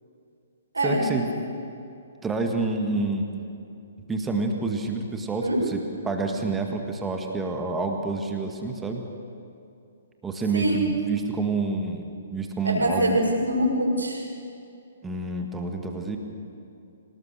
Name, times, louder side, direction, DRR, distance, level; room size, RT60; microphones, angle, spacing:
voice 1, 0.8-1.3 2.2-3.3 4.1-9.0 10.2-13.2 15.0-16.2, right 3 dB, 10° right, 3 dB, 1.8 m, -28 dB
voice 2, 10.5-10.9 12.6-14.2, right 1 dB, 75° right, 0 dB, 5.9 m, -24 dB
25.5 x 18.5 x 6.7 m, 2.6 s
figure-of-eight pair, 125°, 0 cm